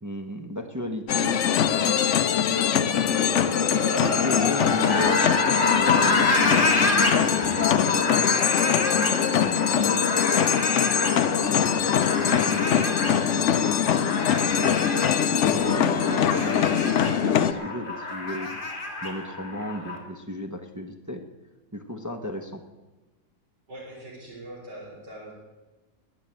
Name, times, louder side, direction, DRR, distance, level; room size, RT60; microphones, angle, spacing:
voice 1, 0.0-3.6 4.0-5.2 5.7-10.5 11.0-14.1 14.6-18.6 19.0-21.2 21.7-22.6, left 1 dB, 15° right, 4 dB, 0.6 m, -35 dB
sound 1, 1.1-17.5, left 9 dB, 75° left, 0.6 m, -23 dB
sound 2, 3.0-20.0, left 2 dB, 25° left, 2.3 m, -28 dB
voice 2, 23.7-25.3, right 1 dB, 65° right, -8 dB, 4.1 m, -42 dB
20.5 x 6.8 x 8.7 m, 1.2 s
omnidirectional pair, 2.0 m